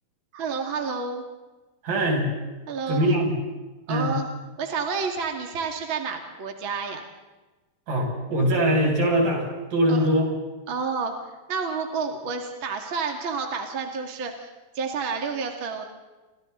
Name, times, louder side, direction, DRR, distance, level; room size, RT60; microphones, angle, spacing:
voice 1, 0.3-1.2 2.7-3.0 3.9-4.3 4.6-7.0 9.9-10.1 10.7-11.1 11.5-14.5 14.7-15.9, right 5 dB, 40° right, 3 dB, 2.7 m, -29 dB
voice 2, 1.8-2.3 2.9-3.3 3.9-4.2 7.9-9.4 9.7-10.3, right 1 dB, 70° right, 0 dB, 8.3 m, -22 dB
29.0 x 26.5 x 4.0 m, 1.2 s
omnidirectional pair, 4.0 m